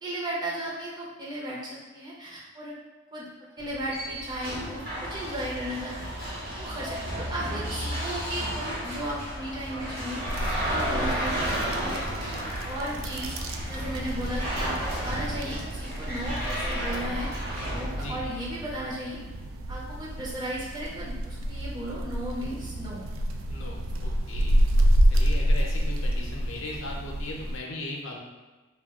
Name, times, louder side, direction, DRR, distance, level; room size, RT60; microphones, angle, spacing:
voice 1, 0.0-2.8 3.1-3.3 3.6-6.2 6.6-10.2 10.6-11.4 11.8-12.0 12.6-13.3 13.6-19.2 19.7-23.0, right 1 dB, 20° right, -6 dB, 0.5 m, -35 dB
sound 1, 3.6-18.7, equal, 45° right, 1.0 m, -33 dB
sound 2, 10.3-27.6, equal, 90° right, 0.3 m, -29 dB
voice 2, 11.0-11.3 14.3-14.6 17.9-18.2 23.5-24.5 25.1-28.2, left 2 dB, 75° left, -1 dB, 0.5 m, -38 dB
2.3 x 2.1 x 3.5 m, 1.2 s
head